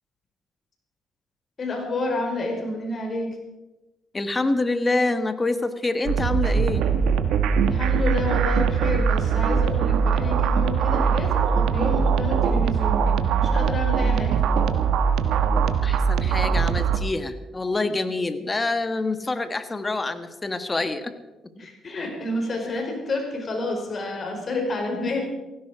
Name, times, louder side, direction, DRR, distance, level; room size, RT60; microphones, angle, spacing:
voice 1, 1.6-3.3 7.6-14.3 21.6-25.2, left 2 dB, 45° left, 3 dB, 4.9 m, -29 dB
voice 2, 4.1-6.9 15.8-21.1 22.6-22.8, left 2 dB, 25° left, 10 dB, 1.5 m, -26 dB
sound 1, 6.1-17.0, right 6 dB, 85° right, 1.2 m, -21 dB
17.5 x 16.0 x 5.0 m, 1.0 s
cardioid pair, 90°, 0 cm